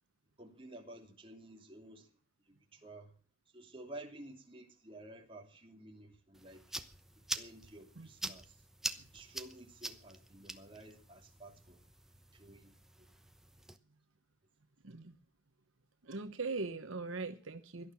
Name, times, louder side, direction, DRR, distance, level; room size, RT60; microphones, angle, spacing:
voice 1, 0.4-2.1 2.5-3.2 3.5-6.6 7.3-8.6 9.1-11.8 12.3-13.1, right 1 dB, 25° right, 3.0 m, -52 dB
sound 1, 6.3-13.8, right 1 dB, ahead, 0.9 m, -45 dB
voice 2, 8.0-8.4 14.8-15.1 16.0-17.9, right 3 dB, 70° right, 1.1 m, -41 dB
17.5 x 12.0 x 5.9 m
head